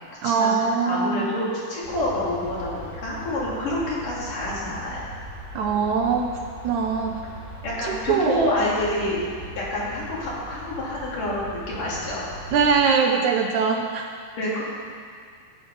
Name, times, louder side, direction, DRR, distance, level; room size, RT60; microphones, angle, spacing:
voice 1, 0.2-1.3 5.5-7.2 7.8-8.5 12.5-14.1, right 5 dB, 75° right, 3 dB, 1.9 m, -22 dB
voice 2, 0.9-5.0 7.6-9.2 9.6-12.2 14.3-14.6, left 1 dB, 75° left, -7 dB, 4.4 m, -27 dB
sound 1, 1.8-12.7, equal, 25° right, 3.8 m, -40 dB
14.0 x 9.0 x 5.5 m, 2.1 s
omnidirectional pair, 3.8 m